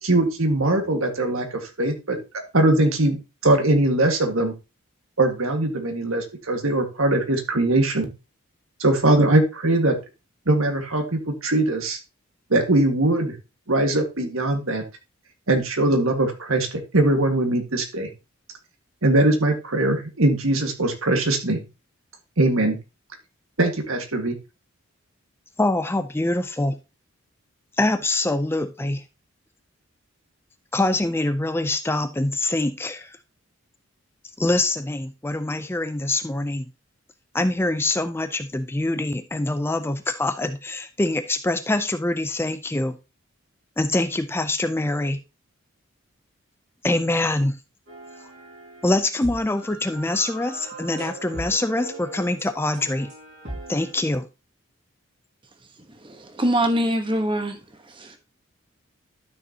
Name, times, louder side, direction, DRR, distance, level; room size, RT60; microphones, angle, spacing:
voice 1, 0.0-2.2 2.5-4.5 5.2-8.1 8.8-10.0 10.5-12.0 12.5-13.3 13.7-14.8 15.5-18.1 19.0-21.6 22.4-22.8 23.6-24.4, right 2 dB, 75° right, 1.8 m, -21 dB
voice 2, 25.6-26.8 27.8-29.0 30.7-33.2 34.4-36.6 37.3-43.0 43.8-45.2 46.8-47.6 48.8-53.1 53.7-54.3, left 2 dB, 10° left, 0.4 m, -24 dB
sound 1, 47.9-53.9, right 1 dB, 55° right, 4.3 m, -39 dB
voice 3, 55.9-57.6 57.9-58.2, right 1 dB, 25° right, 1.1 m, -24 dB
12.0 x 6.4 x 2.9 m
head